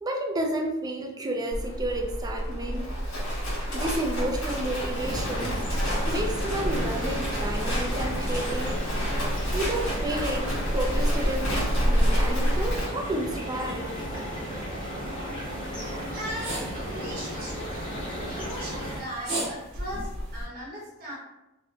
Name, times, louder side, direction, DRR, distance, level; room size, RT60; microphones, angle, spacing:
voice 1, 0.0-2.9 3.7-5.6 6.1-8.8 9.5-13.9, right 1 dB, 20° right, 1 dB, 0.3 m, -31 dB
Livestock farm animals working animals, 1.5-12.9, equal, 85° left, 1.1 m, -28 dB
sound 1, 4.9-19.0, equal, 25° left, 1.3 m, -34 dB
sound 2, 15.4-20.4, right 1 dB, 85° right, 1.0 m, -37 dB
voice 2, 16.1-17.7 18.3-21.1, equal, 45° right, -4 dB, 0.8 m, -38 dB
2.7 x 2.0 x 2.8 m, 0.94 s
head